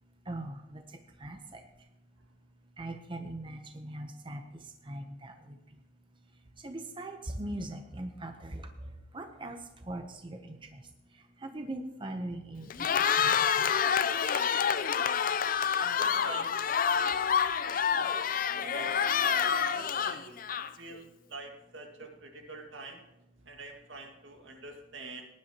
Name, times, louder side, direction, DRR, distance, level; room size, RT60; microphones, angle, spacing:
voice 1, 0.3-0.8 1.2-1.6 2.8-4.4 4.9-5.3 6.6-8.6 9.1-9.6 9.9-10.6 11.4-12.7 13.0-13.7 14.0-14.5, right 1 dB, 25° right, 6 dB, 0.7 m, -40 dB
Cheering, 12.7-20.9, left 7 dB, 45° left, 0.5 m, -28 dB
voice 2, 15.8-17.2 17.7-18.1 18.6-20.4 20.8-21.0 21.3-23.0 23.5-25.3, right 2 dB, 75° right, 3 dB, 2.0 m, -45 dB
18.5 x 10.5 x 2.9 m, 0.91 s
head